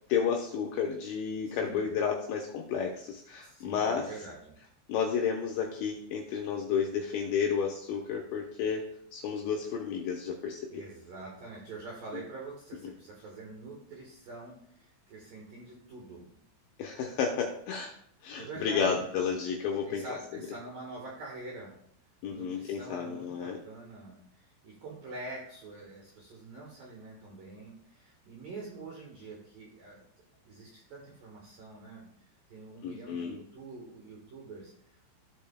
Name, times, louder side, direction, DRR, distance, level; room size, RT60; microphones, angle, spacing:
voice 1, 0.1-4.1 4.9-10.8 16.8-17.9 18.2-20.0 22.2-23.6 32.8-33.4, left 6 dB, 85° left, 0 dB, 2.6 m, -31 dB
voice 2, 1.5-1.9 3.4-4.5 10.7-16.3 18.4-19.3 19.8-21.7 22.3-30.0 30.4-32.1 32.5-34.7, right 3 dB, 65° right, -3 dB, 2.3 m, -45 dB
15.5 x 5.4 x 2.3 m, 0.68 s
omnidirectional pair, 6.0 m